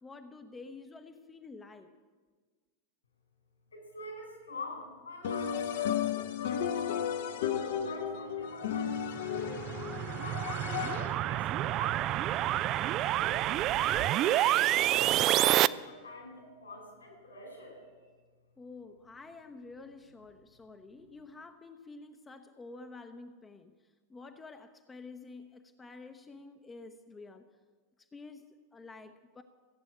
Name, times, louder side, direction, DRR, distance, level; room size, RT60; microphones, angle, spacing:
voice 1, 0.0-1.9 18.6-23.7 24.1-27.5 28.1-28.4 28.7-29.4, left 3 dB, 15° left, 7 dB, 0.7 m, -49 dB
voice 2, 3.7-9.7 10.1-13.4 13.9-17.8, left 2 dB, 75° left, 1 dB, 4.6 m, -47 dB
sound 1, 5.2-11.3, left 8 dB, 55° left, 0.8 m, -34 dB
sound 2, 9.2-15.7, right 14 dB, 35° right, 0.3 m, -28 dB
15.5 x 8.1 x 8.1 m, 1.5 s
figure-of-eight pair, 90°, 0 cm